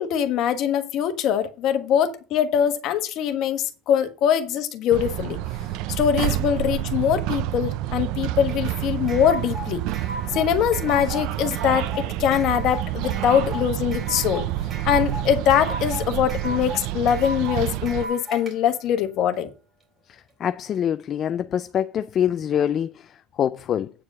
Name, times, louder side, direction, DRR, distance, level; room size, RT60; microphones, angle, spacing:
voice 1, 0.0-5.4 5.9-9.8 10.3-14.5 14.8-19.5, left 9 dB, 55° left, 1.3 m, -22 dB
sound 1, 4.9-18.1, right 14 dB, 65° right, 0.5 m, -28 dB
sound 2, 8.5-18.5, equal, 25° right, 3.6 m, -35 dB
voice 2, 20.1-23.9, left 9 dB, 35° left, 0.4 m, -25 dB
8.7 x 4.8 x 7.5 m
cardioid pair, 140°, 0 cm